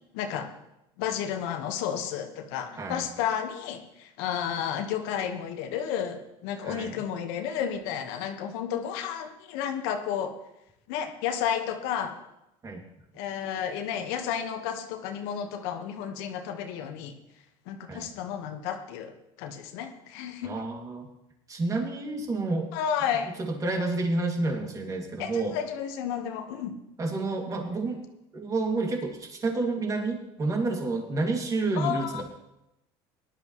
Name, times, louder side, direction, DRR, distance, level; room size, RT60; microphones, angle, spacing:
voice 1, 0.1-0.5 1.0-10.3 10.9-12.2 13.1-17.2 17.7-20.5 22.7-23.3 25.2-26.8 31.7-32.2, left 8 dB, 85° left, 6 dB, 1.4 m, -32 dB
voice 2, 6.6-6.9 12.6-12.8 17.9-18.1 20.4-21.1 21.5-22.7 23.4-25.6 27.0-28.0 28.3-32.2, right 3 dB, 25° right, 2 dB, 2.4 m, -29 dB
18.5 x 11.5 x 3.2 m, 0.88 s
supercardioid pair, 115°, 12 cm